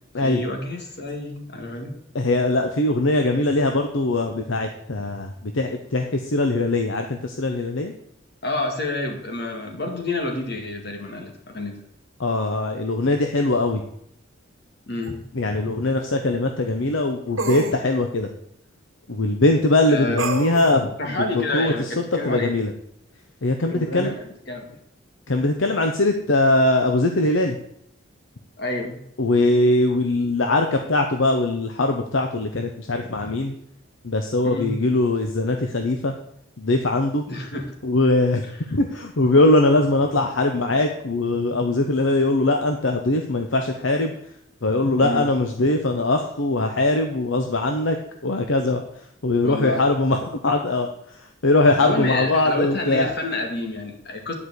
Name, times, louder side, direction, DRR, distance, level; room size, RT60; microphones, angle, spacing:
voice 1, 0.2-1.9 8.4-11.8 14.9-15.2 19.9-20.2 21.0-22.5 23.7-24.7 28.6-29.0 34.4-34.7 37.3-37.6 45.0-45.3 49.4-49.9 51.8-54.3, left 2 dB, 50° left, 3 dB, 2.0 m, -28 dB
voice 2, 2.1-7.9 12.2-13.8 15.3-18.3 19.1-20.9 21.2-22.7 23.4-24.1 25.3-27.6 29.2-33.5 34.0-36.1 36.6-37.2 37.8-38.4 38.7-44.1 44.6-48.0 48.2-48.8 49.2-53.1, left 2 dB, 70° left, 4 dB, 0.8 m, -21 dB
sound 1, 15.0-15.1 17.4-17.8 20.2-20.7, right 2 dB, 80° right, 1.7 m, -27 dB
9.9 x 5.0 x 8.0 m, 0.72 s
head